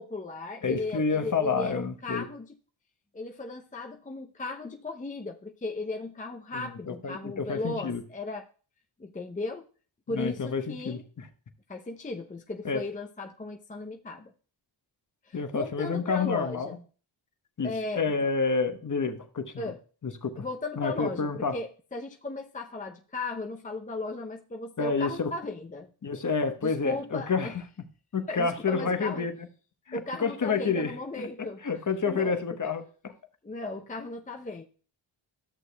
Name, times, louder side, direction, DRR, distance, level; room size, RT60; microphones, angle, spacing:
voice 1, 0.0-2.5 3.1-8.5 9.0-9.6 10.1-11.0 11.7-14.3 15.2-16.8 17.6-18.1 19.6-19.8 20.4-25.9 26.6-27.5 28.3-29.3 29.9-31.6 32.1-32.4 33.4-34.6, left 3 dB, 15° left, 3 dB, 0.6 m, -36 dB
voice 2, 0.6-2.3 6.5-8.0 10.1-11.3 12.6-12.8 15.3-16.8 17.6-19.7 20.0-20.5 20.8-21.5 24.8-25.3 26.0-27.6 28.1-29.5 29.9-30.9 31.2-33.1, left 5 dB, 40° left, 8 dB, 1.0 m, -29 dB
13.5 x 6.4 x 2.2 m, 0.39 s
cardioid pair, 55°, 49 cm